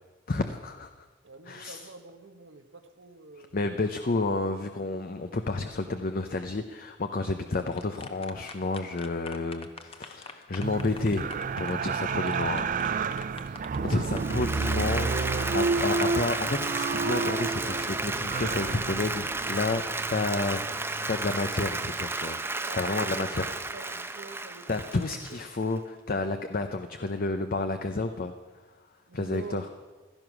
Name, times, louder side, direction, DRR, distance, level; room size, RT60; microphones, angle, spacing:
voice 1, 0.3-1.1 1.5-1.8 3.5-11.3 11.6-12.6 13.8-22.4 22.7-23.5 24.7-28.3 29.1-29.6, left 3 dB, 50° left, 7 dB, 0.7 m, -30 dB
voice 2, 1.2-3.6 11.9-13.7 14.6-15.2 22.6-25.0 29.1-29.6, right 4 dB, 80° right, 8 dB, 1.3 m, -45 dB
sound 1, 7.3-17.1, left 4 dB, 30° left, 1.0 m, -46 dB
sound 2, 10.6-22.0 22.4-22.5, right 4 dB, 45° right, 0.4 m, -31 dB
Applause, 14.0-25.8, right 3 dB, 15° right, 0.8 m, -33 dB
16.0 x 13.0 x 6.1 m, 1.3 s
head